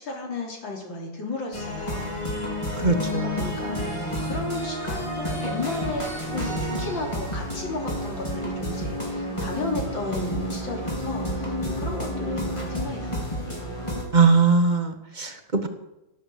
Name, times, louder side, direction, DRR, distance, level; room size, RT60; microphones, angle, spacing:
voice 1, 0.0-2.1 3.4-13.7, left 2 dB, 75° left, 0 dB, 3.9 m, -34 dB
sound 1, 1.5-14.0, equal, 15° left, 4.1 m, -30 dB
voice 2, 2.8-3.6 14.1-15.7, right 4 dB, 25° right, 6 dB, 1.3 m, -21 dB
17.5 x 8.1 x 7.7 m, 0.91 s
omnidirectional pair, 2.1 m